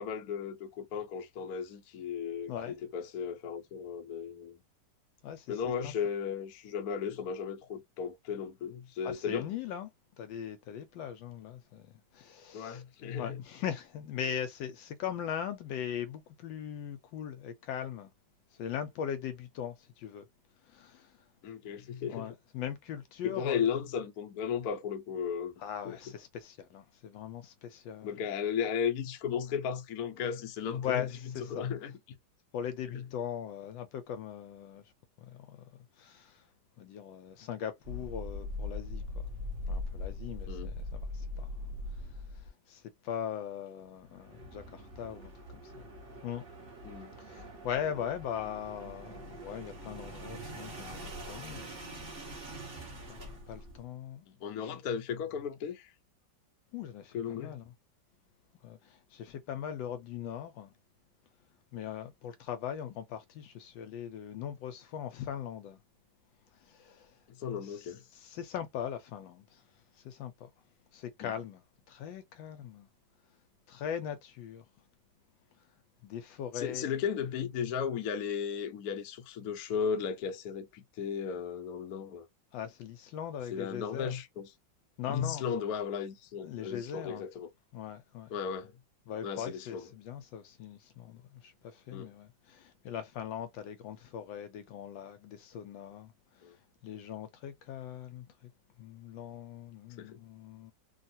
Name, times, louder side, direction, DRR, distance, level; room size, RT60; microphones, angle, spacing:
voice 1, 0.0-4.6 5.5-9.5 12.5-13.4 21.4-22.3 23.2-25.5 25.8-26.0 28.0-31.1 31.5-31.9 32.9-33.0 40.5-40.7 46.8-47.2 54.3-55.9 57.1-57.6 67.3-68.0 71.2-71.3 76.5-82.3 83.5-84.5 85.1-87.5 88.3-88.7 89.2-89.8 91.9-92.1 96.4-96.5 100.0-100.2, left 7 dB, 65° left, 1.0 m, -35 dB
voice 2, 5.2-5.9 9.0-9.9 10.2-12.8 13.2-18.1 18.5-20.2 20.6-21.2 22.1-23.6 25.6-28.3 30.8-31.7 32.5-34.8 35.2-36.5 36.8-39.3 39.7-41.5 41.9-45.9 46.2-46.4 47.1-52.4 52.9-54.3 54.6-54.7 56.7-57.7 58.6-60.7 61.7-65.8 66.6-67.2 67.6-69.7 69.9-70.5 70.9-72.9 73.7-74.7 76.0-76.9 82.5-84.1 85.0-85.5 86.4-87.3 87.7-88.3 89.1-98.5 98.8-100.7, left 9 dB, 80° left, 1.3 m, -40 dB
sound 1, 37.8-42.5 43.9-53.8, left 1 dB, 35° right, 1.3 m, -42 dB
3.4 x 2.4 x 2.7 m
omnidirectional pair, 2.1 m